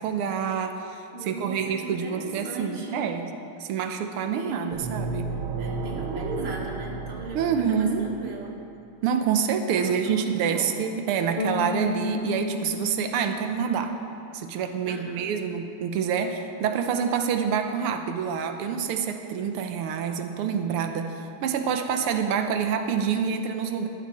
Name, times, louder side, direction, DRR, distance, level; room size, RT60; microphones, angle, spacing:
voice 1, 0.0-3.3 3.6-5.3 7.3-8.1 9.0-13.9 14.3-23.9, right 7 dB, 90° right, 6 dB, 1.7 m, -27 dB
voice 2, 1.1-3.2 4.2-4.9 5.6-8.6 9.8-10.8 14.9-15.2, right 2 dB, 30° right, -1 dB, 1.8 m, -37 dB
sound 1, 4.7-8.4, right 4 dB, 70° right, 1.7 m, -33 dB
Bass guitar, 11.4-14.5, left 5 dB, 80° left, 1.6 m, -33 dB
15.5 x 12.0 x 4.2 m, 2.7 s
omnidirectional pair, 2.4 m